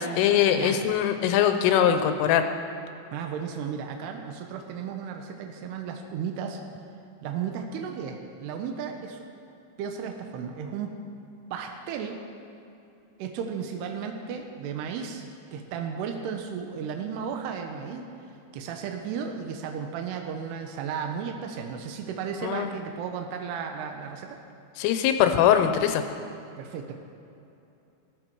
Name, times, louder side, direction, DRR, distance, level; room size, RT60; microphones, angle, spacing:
voice 1, 0.0-2.4 22.4-22.7 24.8-26.0, left 9 dB, 85° left, 7 dB, 3.0 m, -22 dB
voice 2, 0.5-0.9 3.1-6.6 7.2-9.2 9.8-10.9 11.5-12.2 13.2-15.2 15.5-18.0 18.5-24.4 26.6-26.9, right 7 dB, 85° right, 4 dB, 2.3 m, -34 dB
15.0 x 14.5 x 4.6 m, 2.7 s
omnidirectional pair, 6.0 m